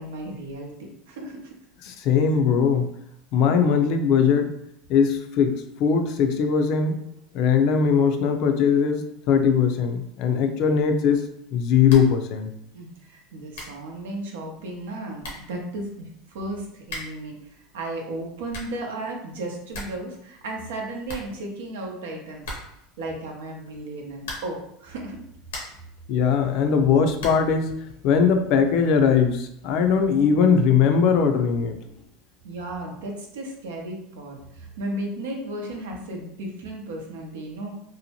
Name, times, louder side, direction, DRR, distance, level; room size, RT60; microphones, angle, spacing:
voice 1, 0.0-1.4 1.8-1.9 12.7-22.6 23.0-25.2 26.5-26.6 32.4-37.7, right 1 dB, 85° right, 1 dB, 0.6 m, -35 dB
voice 2, 1.8-2.9 3.3-4.5 4.9-7.0 7.3-11.3 11.5-12.5 26.1-27.7 28.0-31.8, left 6 dB, 60° left, 6 dB, 0.4 m, -20 dB
sound 1, 11.9-12.2 12.5-12.6 13.2-13.3 13.5-13.9 14.8-14.9 15.2-15.6 16.8-17.3 18.2-18.9 19.2-19.3 19.5-20.1 20.3-20.4 20.7-20.8 21.0-21.8 22.4-22.9 24.2-24.7 25.2-25.9 27.2-27.6, left 1 dB, 90° left, 0.8 m, -38 dB
2.7 x 2.1 x 2.8 m, 0.74 s
supercardioid pair, 105°, 0 cm